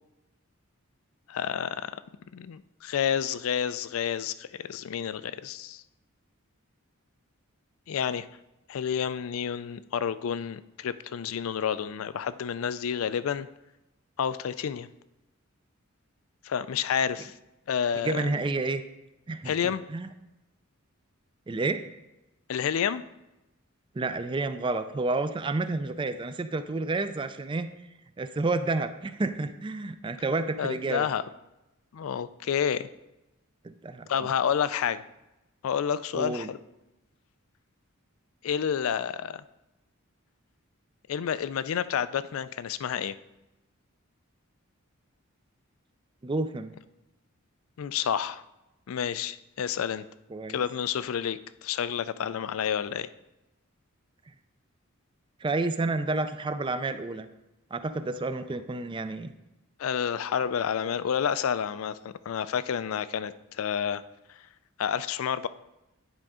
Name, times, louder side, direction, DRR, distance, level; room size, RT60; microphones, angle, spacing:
voice 1, 1.3-2.0 2.3-5.8 7.9-8.3 8.7-13.5 14.2-14.9 16.4-17.3 17.7-18.3 19.4-19.8 22.5-23.0 30.6-31.2 31.9-32.9 34.1-35.0 35.6-36.6 38.4-39.4 41.1-43.2 47.8-48.4 48.9-50.0 50.5-53.1 59.8-64.0 64.8-65.5, left 8 dB, 70° left, 15 dB, 0.4 m, -29 dB
voice 2, 18.0-18.8 19.3-20.1 21.5-21.8 24.0-27.7 28.2-31.1 33.6-34.3 36.1-36.5 46.2-46.7 50.3-50.6 55.4-57.3 57.7-59.3, right 3 dB, 25° right, 10 dB, 0.3 m, -30 dB
10.0 x 5.1 x 3.6 m, 0.97 s
head